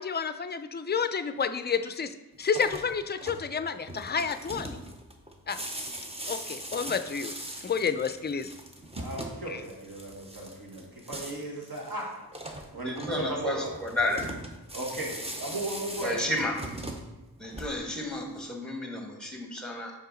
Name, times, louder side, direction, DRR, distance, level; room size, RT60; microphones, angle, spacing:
voice 1, 0.0-4.8 5.5-5.6 6.3-7.3 7.6-8.5 9.5-9.6, left 6 dB, 30° left, 10 dB, 0.3 m, -30 dB
sound 1, 2.4-18.1, right 1 dB, 15° right, 0.7 m, -41 dB
voice 2, 8.9-12.1 12.7-13.8 14.7-16.4, right 1 dB, 60° right, -2 dB, 1.6 m, -36 dB
voice 3, 12.8-13.6 13.8-14.3 16.0-16.5 17.4-19.9, left 1 dB, ahead, 1 dB, 1.2 m, -31 dB
5.6 x 4.8 x 3.8 m, 0.99 s
wide cardioid pair, 75°, 38 cm